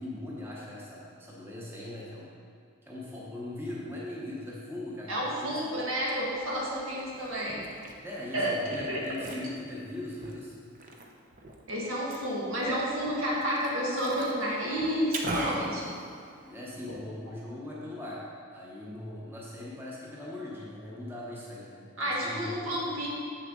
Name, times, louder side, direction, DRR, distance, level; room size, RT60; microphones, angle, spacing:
voice 1, 0.0-2.3 2.8-5.6 8.0-10.6 16.4-18.3 18.5-23.0, left 1 dB, 10° right, -5 dB, 0.9 m, -40 dB
voice 2, 5.1-7.6 8.3-8.5 8.8-9.4 11.7-15.9 18.8-19.0 22.0-23.1, equal, 80° right, -4 dB, 1.7 m, -31 dB
Liquid, 5.7-16.7, right 2 dB, 40° right, 0.6 m, -42 dB
7.3 x 6.6 x 3.8 m, 2.3 s
head